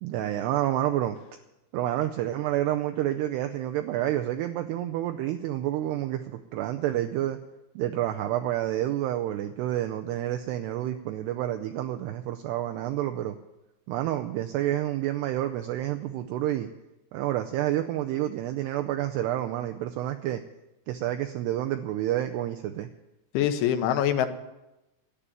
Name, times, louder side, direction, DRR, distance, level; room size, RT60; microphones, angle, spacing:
voice 1, 0.0-1.2 1.7-7.4 7.8-13.4 13.9-16.7 17.1-20.4 20.9-22.9, right 13 dB, 80° right, 6 dB, 2.5 m, -29 dB
voice 2, 23.3-24.3, left 10 dB, 90° left, 8 dB, 3.4 m, -24 dB
14.0 x 10.0 x 8.9 m, 0.95 s
omnidirectional pair, 5.3 m